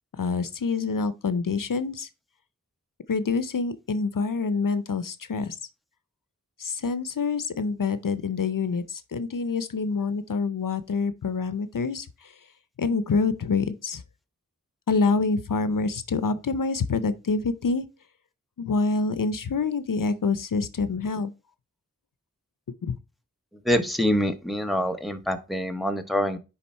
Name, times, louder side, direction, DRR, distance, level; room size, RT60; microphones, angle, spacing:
voice 1, 0.2-2.1 3.1-5.6 6.6-12.3 12.8-14.0 14.9-17.9 18.6-21.3 22.8-23.0, left 4 dB, 75° left, 0.6 m, -26 dB
voice 2, 23.6-26.4, equal, ahead, 1.0 m, -25 dB
9.9 x 3.6 x 4.2 m
wide cardioid pair, 50°, 33 cm